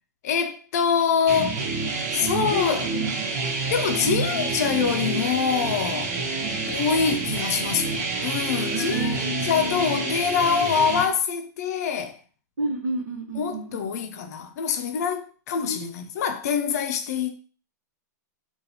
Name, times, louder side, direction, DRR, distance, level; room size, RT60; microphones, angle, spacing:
voice 1, 0.2-1.6 2.1-2.9 3.7-6.1 6.7-12.2 13.4-17.3, left 7 dB, 65° left, 0.5 m, -25 dB
sound 1, 1.3-11.0, right 3 dB, 65° right, 1.2 m, -28 dB
voice 2, 2.3-3.5 4.2-5.0 6.4-6.8 8.7-10.2 12.6-14.0 15.6-15.9, right 1 dB, 80° right, 1.0 m, -32 dB
3.8 x 2.4 x 2.8 m
hypercardioid pair, 130°, 9 cm